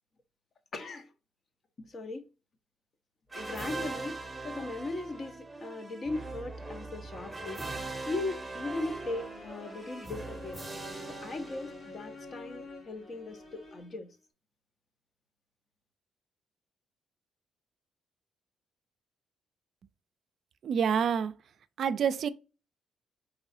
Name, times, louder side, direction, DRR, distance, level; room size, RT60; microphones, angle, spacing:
voice 1, 0.7-1.1 1.8-2.3 3.3-4.2 4.4-7.7 8.1-10.6 11.1-14.2, left 2 dB, 45° left, 0.7 m, -38 dB
sound 1, 3.3-12.2, right 3 dB, 10° right, 0.7 m, -41 dB
sound 2, 8.7-14.1, left 3 dB, 65° left, 1.3 m, -48 dB
voice 2, 20.6-21.3 21.8-22.3, right 7 dB, 60° right, 0.3 m, -27 dB
3.9 x 3.0 x 2.6 m
cardioid pair, 90°, 0 cm